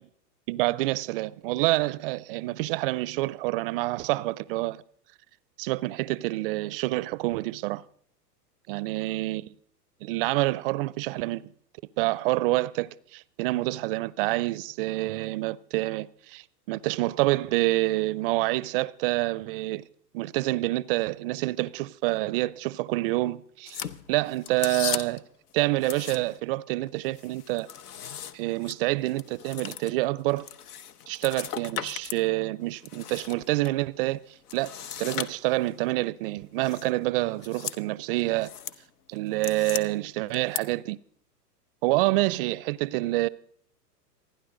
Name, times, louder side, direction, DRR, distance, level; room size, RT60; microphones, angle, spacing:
voice 1, 0.5-4.8 5.6-7.8 8.7-9.5 10.0-11.4 12.0-19.9 20.1-25.2 25.5-27.7 28.3-30.5 31.1-34.2 34.5-34.7 35.0-38.5 39.1-41.0 41.8-43.3, right 19 dB, 40° right, 0.5 m, -27 dB
sound 1, 23.7-25.3 25.8-26.5 26.9-32.2 32.6-33.7 34.5-35.8 36.6-36.9 37.3-37.8 38.2-38.8 39.2-39.8 40.3-40.6, left 9 dB, 70° left, 0.9 m, -37 dB
27.5 x 10.0 x 3.8 m
hypercardioid pair, 110°, 48 cm